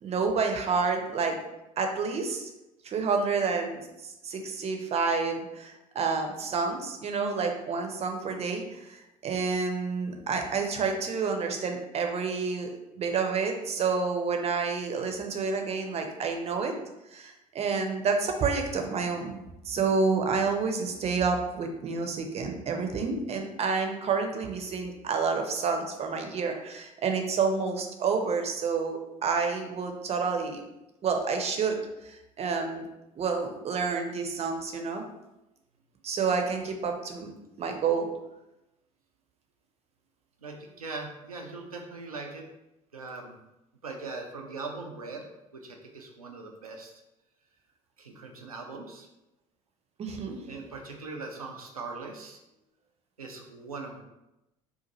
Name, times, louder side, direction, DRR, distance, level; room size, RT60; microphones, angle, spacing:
voice 1, 0.0-1.4 1.8-2.5 2.8-12.7 13.0-16.7 17.1-19.4 19.7-30.6 31.0-32.8 33.2-35.0 36.0-37.3 37.6-38.1 50.0-50.4, right 5 dB, 35° right, 4 dB, 0.6 m, -29 dB
voice 2, 40.4-42.4 42.9-43.4 43.8-47.0 48.0-49.1 50.5-52.4 53.2-54.0, right 3 dB, 90° right, 2 dB, 0.5 m, -40 dB
2.6 x 2.5 x 4.1 m, 0.94 s
figure-of-eight pair, 60°, 18 cm